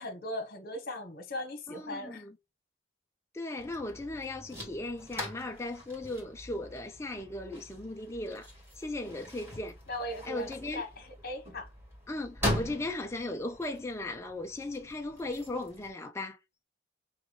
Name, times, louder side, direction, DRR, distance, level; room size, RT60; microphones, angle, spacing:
voice 1, 0.0-2.2 9.9-11.7, left 1 dB, 50° left, 1.3 m, -39 dB
voice 2, 1.7-2.4 3.3-8.5 8.8-9.8 10.2-10.8 12.1-16.4, left 2 dB, 15° left, 0.4 m, -37 dB
sound 1, 3.6-15.9, equal, 10° right, 1.8 m, -41 dB
5.9 x 2.4 x 3.2 m
head